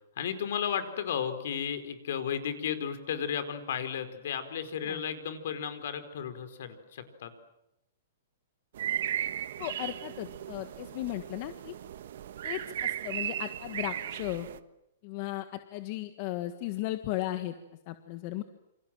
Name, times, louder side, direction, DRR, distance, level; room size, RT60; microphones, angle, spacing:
voice 1, 0.2-7.3, left 8 dB, 60° left, 10 dB, 4.6 m, -34 dB
sound 1, 8.7-14.6, right 10 dB, 60° right, 1.4 m, -36 dB
voice 2, 9.6-11.7 12.4-14.5 15.0-15.4 15.7-17.5 17.9-18.4, left 15 dB, 35° left, 9 dB, 1.6 m, -36 dB
28.5 x 27.5 x 7.7 m, 0.84 s
hypercardioid pair, 170°, 0 cm